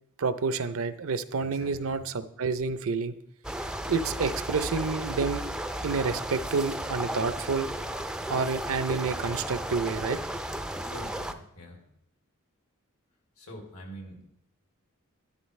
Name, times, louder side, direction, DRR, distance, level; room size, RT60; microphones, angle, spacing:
voice 1, 0.2-3.2 3.9-5.5 5.8-7.7 8.3-10.2, right 4 dB, 65° right, 13 dB, 0.6 m, -29 dB
voice 2, 1.4-2.0 10.8-11.8 13.4-14.3, equal, 80° left, 1 dB, 2.6 m, -45 dB
sound 1, 3.4-11.3, right 1 dB, 5° right, 0.4 m, -34 dB
11.5 x 11.0 x 3.2 m, 0.77 s
head